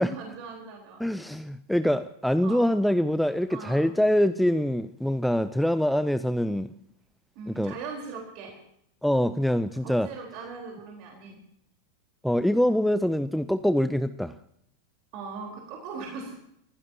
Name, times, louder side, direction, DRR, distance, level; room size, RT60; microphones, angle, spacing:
voice 1, 0.0-1.0 2.4-2.6 3.5-3.9 7.3-8.5 9.8-11.4 15.1-16.3, right 4 dB, 45° right, 0 dB, 4.1 m, -39 dB
voice 2, 1.0-6.7 7.5-7.7 9.0-10.1 12.2-14.4, equal, ahead, 12 dB, 0.6 m, -24 dB
29.5 x 16.0 x 2.9 m, 0.70 s
figure-of-eight pair, 90°, 0 cm